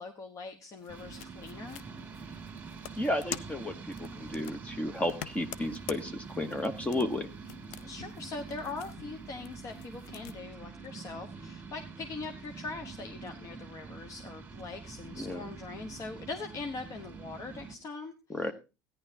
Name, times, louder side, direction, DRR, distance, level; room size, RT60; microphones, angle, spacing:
voice 1, 0.0-1.8 7.8-18.4, left 3 dB, 40° left, 7 dB, 1.0 m, -42 dB
sound 1, 0.8-10.4, left 11 dB, 75° left, 0.6 m, -47 dB
sound 2, 0.9-17.7, right 5 dB, 15° right, 2.1 m, -45 dB
voice 2, 3.0-7.3 15.2-15.4 18.3-18.5, left 1 dB, 15° left, 9 dB, 0.9 m, -33 dB
14.0 x 10.0 x 2.7 m, 0.28 s
supercardioid pair, 100°, 9 cm